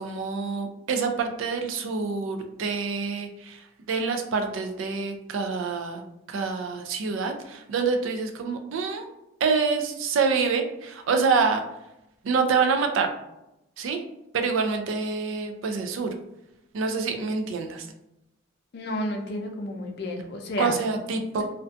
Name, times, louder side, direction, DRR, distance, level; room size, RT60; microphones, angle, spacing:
voice 1, 0.0-3.6 3.9-6.0 6.3-9.0 9.4-11.6 12.2-13.1 13.8-14.0 14.3-16.1 16.7-17.9 20.6-21.4, right 5 dB, 80° right, 5 dB, 0.4 m, -26 dB
voice 2, 18.7-20.8 21.3-21.4, left 1 dB, 55° left, 3 dB, 0.4 m, -31 dB
2.5 x 2.2 x 2.4 m, 0.89 s
head